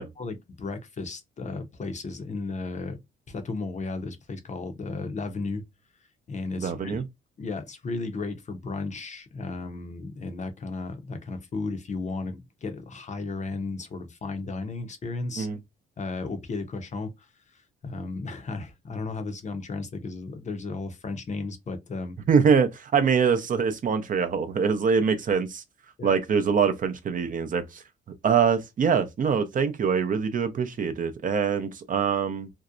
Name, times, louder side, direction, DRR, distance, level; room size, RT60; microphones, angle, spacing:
voice 1, 0.0-3.0 3.3-5.6 6.3-7.0 7.4-15.5 16.0-17.3 17.5-22.2 26.0-26.1, left 3 dB, 35° left, 0.6 m, -34 dB
voice 2, 6.6-7.0 15.4-15.6 22.3-25.6 26.0-27.8 28.2-32.5, right 6 dB, 45° right, 0.5 m, -24 dB
2.6 x 2.0 x 2.4 m
cardioid pair, 90°, 20 cm